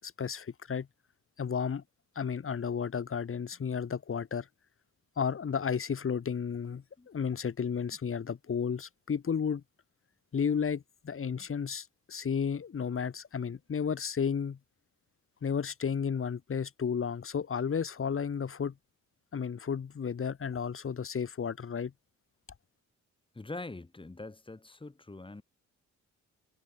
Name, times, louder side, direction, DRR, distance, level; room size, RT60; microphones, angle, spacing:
voice 1, 0.0-0.9 1.4-1.8 2.2-4.5 5.2-9.6 10.3-14.6 15.4-18.7 19.3-21.9, left 6 dB, 45° left, 5.3 m, -33 dB
voice 2, 23.3-25.4, left 2 dB, 15° left, 6.8 m, -43 dB
cardioid pair, 90°, 30 cm